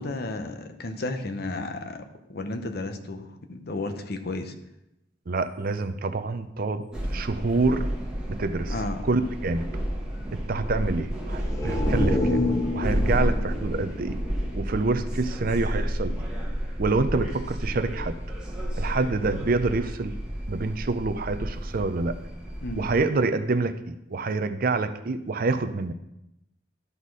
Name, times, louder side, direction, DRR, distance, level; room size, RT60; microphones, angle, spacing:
voice 1, 0.0-4.5 8.7-9.0 10.1-10.3 22.6-22.8, left 2 dB, 55° left, 7 dB, 0.8 m, -33 dB
voice 2, 5.3-6.8 7.1-7.9 8.3-8.7 9.0-9.7 10.3-12.4 12.7-14.2 14.5-16.3 16.8-18.2 18.8-20.2 20.5-22.2 22.8-25.9, right 3 dB, 50° right, 11 dB, 0.5 m, -27 dB
sound 1, 6.9-23.0, equal, 5° right, 1.4 m, -31 dB
sound 2, 11.3-15.1 15.4-15.5, left 2 dB, 15° left, 0.8 m, -29 dB
12.5 x 4.2 x 4.8 m, 0.87 s
head